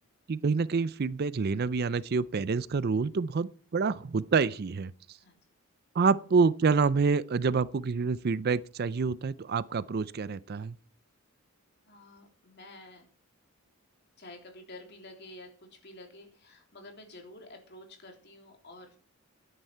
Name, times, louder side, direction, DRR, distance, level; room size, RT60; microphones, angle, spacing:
voice 1, 0.3-4.9 5.9-10.8, right 4 dB, 45° right, 0.4 m, -27 dB
voice 2, 11.9-13.1 14.2-19.0, left 1 dB, 50° left, 3.4 m, -50 dB
12.5 x 10.0 x 4.6 m
head